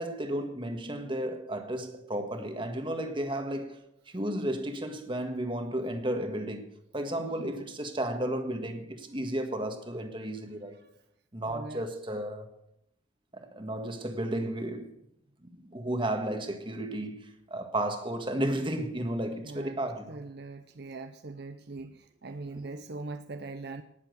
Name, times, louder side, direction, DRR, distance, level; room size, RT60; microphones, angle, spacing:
voice 1, 0.0-10.8 11.3-12.5 13.3-14.9 15.4-20.2, right 1 dB, 25° right, 1.6 m, -33 dB
voice 2, 7.2-7.6 10.7-10.9 11.4-11.8 19.4-19.8 20.1-23.8, right 3 dB, 55° right, 0.7 m, -41 dB
19.0 x 7.4 x 6.7 m
head